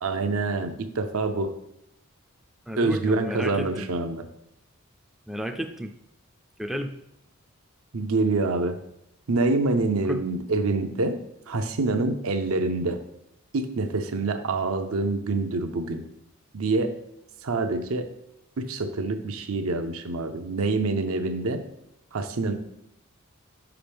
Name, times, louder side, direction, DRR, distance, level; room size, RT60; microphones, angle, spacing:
voice 1, 0.0-1.5 2.8-4.2 7.9-8.8 9.3-11.2 11.5-13.0 13.5-16.0 16.5-17.0 17.4-18.1 18.6-21.6 22.1-22.5, right 3 dB, 80° right, 7 dB, 0.6 m, -26 dB
voice 2, 2.7-3.9 5.3-5.9 6.6-7.0 10.1-10.2, equal, ahead, 3 dB, 0.3 m, -32 dB
6.0 x 5.1 x 3.4 m, 0.83 s
head